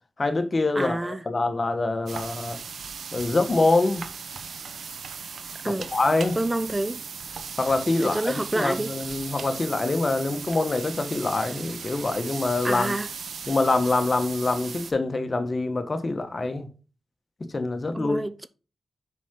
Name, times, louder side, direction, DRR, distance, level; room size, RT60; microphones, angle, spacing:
voice 1, 0.2-2.6 3.1-4.1 5.6-6.4 7.6-12.9 13.5-16.7 17.5-18.2, left 2 dB, 45° left, 1.3 m, -25 dB
voice 2, 0.8-1.2 5.6-5.9 6.4-7.0 8.0-8.9 12.6-13.1 17.9-18.5, right 1 dB, 20° right, 0.5 m, -28 dB
sound 1, 2.1-14.9, right 6 dB, 80° right, 0.8 m, -37 dB
6.0 x 5.9 x 3.8 m
cardioid pair, 50°, 0 cm